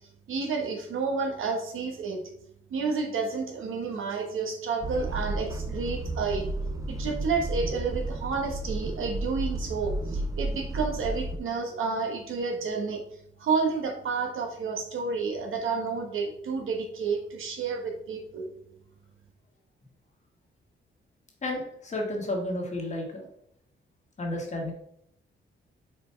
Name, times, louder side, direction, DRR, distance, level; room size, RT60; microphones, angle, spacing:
voice 1, 0.3-2.2 2.7-6.5 6.9-13.0 13.4-18.5, right 4 dB, 85° right, 2 dB, 1.4 m, -30 dB
sound 1, 4.8-11.4, right 2 dB, 15° right, 0.4 m, -32 dB
voice 2, 21.4-23.3 24.2-24.7, left 1 dB, 35° left, 1 dB, 1.5 m, -32 dB
4.8 x 4.5 x 4.6 m, 0.70 s
wide cardioid pair, 155°, 20 cm